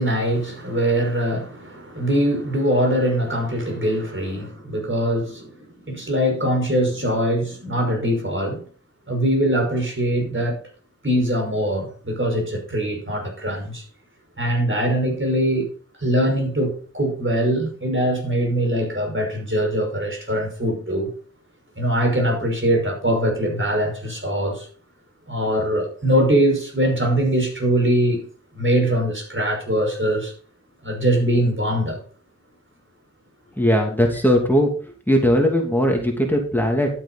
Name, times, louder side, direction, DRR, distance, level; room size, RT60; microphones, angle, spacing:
voice 1, 0.0-8.6 9.1-10.6 11.0-13.8 14.4-15.7 16.0-21.1 21.8-24.7 25.3-28.2 28.5-30.3 30.8-32.0, right 1 dB, 40° right, 5.7 m, -22 dB
voice 2, 33.6-34.7 35.1-36.9, equal, 5° left, 2.9 m, -19 dB
12.0 x 8.9 x 4.2 m
wide cardioid pair, 60°, 30 cm